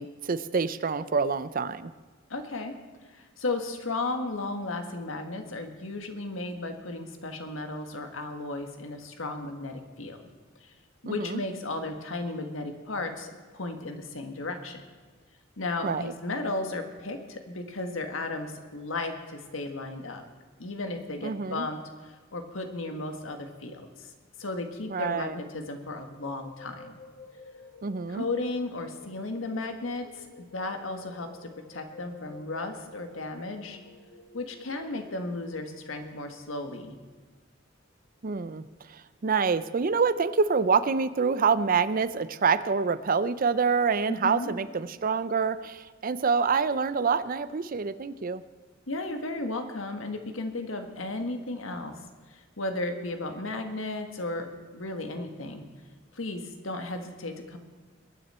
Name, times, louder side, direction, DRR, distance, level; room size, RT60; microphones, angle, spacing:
voice 1, 0.0-1.9 11.0-11.4 15.8-16.1 21.2-21.7 24.9-25.4 27.8-28.3 38.2-48.4, right 5 dB, 45° right, 14 dB, 0.5 m, -26 dB
voice 2, 2.3-2.7 3.1-10.2 10.6-10.7 11.0-14.8 15.6-20.2 20.6-24.1 24.4-26.9 28.1-33.8 34.3-37.0 44.1-44.5 48.9-51.9 52.3-55.7 56.1-57.6, left 2 dB, 90° left, 5 dB, 1.6 m, -35 dB
sound 1, 26.0-36.2, left 4 dB, 70° left, 2.0 m, -52 dB
22.0 x 9.8 x 4.4 m, 1.4 s
head